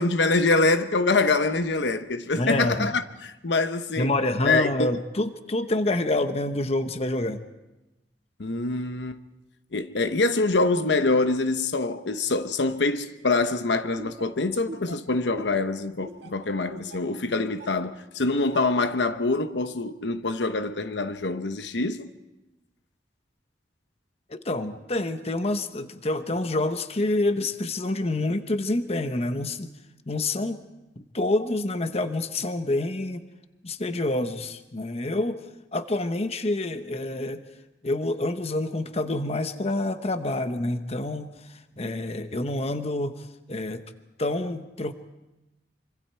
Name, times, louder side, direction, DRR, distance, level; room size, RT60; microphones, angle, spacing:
voice 1, 0.0-4.1 4.4-4.9 8.4-9.2 9.7-22.1, left 3 dB, 80° left, 1.0 m, -25 dB
voice 2, 2.3-2.9 4.0-7.4 24.3-29.7 30.1-30.6 31.0-33.2 33.6-35.4 35.7-37.4 37.8-43.8 44.2-44.9, left 2 dB, 35° left, 1.0 m, -27 dB
Laughter, 14.0-17.8 18.3-18.8, right 1 dB, 70° right, 1.8 m, -42 dB
25.5 x 25.0 x 4.5 m
head